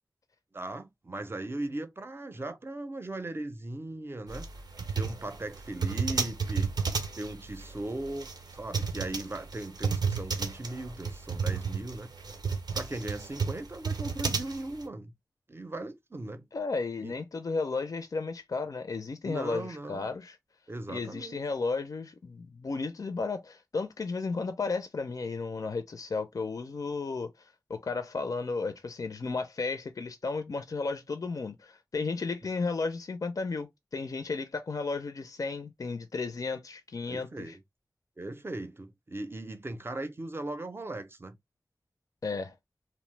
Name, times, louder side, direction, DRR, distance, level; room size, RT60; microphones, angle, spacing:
voice 1, 0.5-4.5 4.9-6.7 7.2-12.1 12.7-15.1 15.5-16.5 17.0-17.1 19.2-20.1 20.7-21.4 37.1-37.6 38.2-41.4, right 2 dB, 35° right, 0.5 m, -38 dB
sound 1, 4.3-14.8, right 5 dB, 85° right, 0.6 m, -32 dB
voice 2, 16.5-20.4 20.9-37.6 42.2-42.6, left 4 dB, 60° left, 0.4 m, -34 dB
2.8 x 2.0 x 3.1 m
wide cardioid pair, 65°, 7 cm